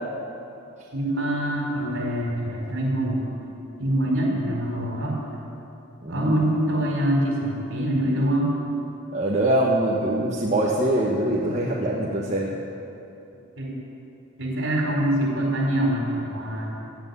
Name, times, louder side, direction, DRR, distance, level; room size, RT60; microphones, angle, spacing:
voice 1, 0.9-3.3 3.8-5.2 6.1-8.5 13.6-13.8 14.4-16.8, right 1 dB, 60° right, -1 dB, 4.4 m, -24 dB
voice 2, 6.0-6.5 9.1-12.5, right 1 dB, 30° right, -4 dB, 1.3 m, -23 dB
17.0 x 8.3 x 9.8 m, 2.8 s
head